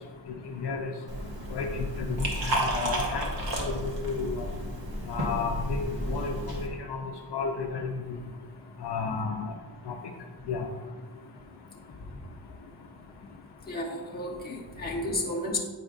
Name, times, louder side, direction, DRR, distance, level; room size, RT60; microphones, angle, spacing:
voice 1, 0.3-0.9 1.5-3.3 3.6-4.5 5.1-7.0 7.3-8.2 8.8-9.5 9.9-10.0 10.5-10.7, left 4 dB, 60° left, 3 dB, 0.6 m, -32 dB
Liquid, 1.1-6.7, right 1 dB, 55° right, 1.3 m, -32 dB
voice 2, 13.7-15.6, left 1 dB, 20° left, -3 dB, 0.9 m, -32 dB
9.0 x 5.0 x 2.4 m, 1.5 s
wide cardioid pair, 150°, 45 cm